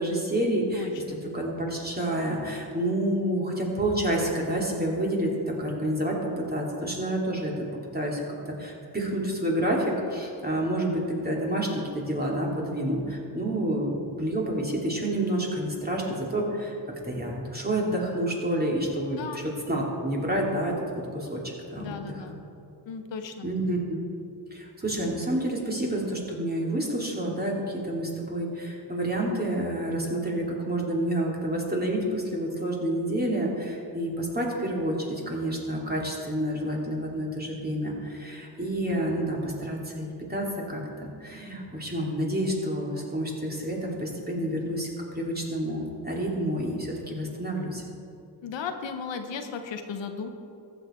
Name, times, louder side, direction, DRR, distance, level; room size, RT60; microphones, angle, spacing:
voice 1, 0.0-7.5 7.9-16.7 17.0-19.4 19.7-20.7 21.1-21.4 21.7-22.0 23.4-24.0 24.5-47.8, right 1 dB, 20° right, -2 dB, 2.7 m, -29 dB
voice 2, 0.7-1.2 19.2-19.4 21.8-22.4 22.9-23.5 48.4-50.3, left 6 dB, 85° left, 6 dB, 0.9 m, -35 dB
14.0 x 7.1 x 4.4 m, 2.6 s
cardioid pair, 60°, 43 cm